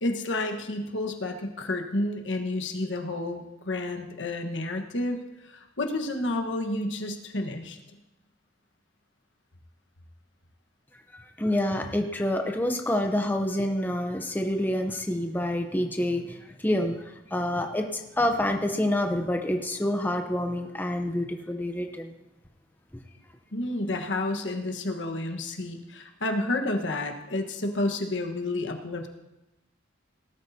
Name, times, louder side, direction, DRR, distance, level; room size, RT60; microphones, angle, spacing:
voice 1, 0.0-5.2 5.4-7.8 23.5-29.1, left 2 dB, 80° left, 4 dB, 1.3 m, -30 dB
voice 2, 11.1-16.4 16.6-17.0 17.3-22.1, left 1 dB, 10° left, 4 dB, 0.7 m, -27 dB
18.5 x 12.5 x 2.8 m, 0.94 s
head